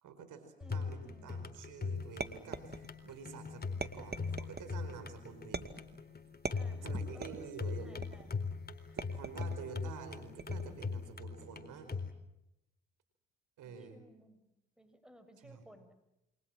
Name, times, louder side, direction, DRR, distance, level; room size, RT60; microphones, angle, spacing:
voice 1, 0.0-5.7 6.7-8.0 8.9-11.9 13.6-14.0 15.4-15.7, right 6 dB, 75° right, 9 dB, 4.9 m, -49 dB
sound 1, 0.6-12.1, left 4 dB, 30° left, 4.0 m, -41 dB
voice 2, 0.6-1.4 6.5-8.4 13.6-14.5 14.8-15.9, equal, ahead, 11 dB, 6.0 m, -60 dB
sound 2, 2.2-3.1 3.8-4.7 5.5-6.0 6.5-7.5 8.0-8.4 9.0-9.6 10.4-10.9, right 3 dB, 30° right, 2.3 m, -42 dB
28.5 x 24.0 x 7.5 m, 0.89 s
supercardioid pair, 55°, 31 cm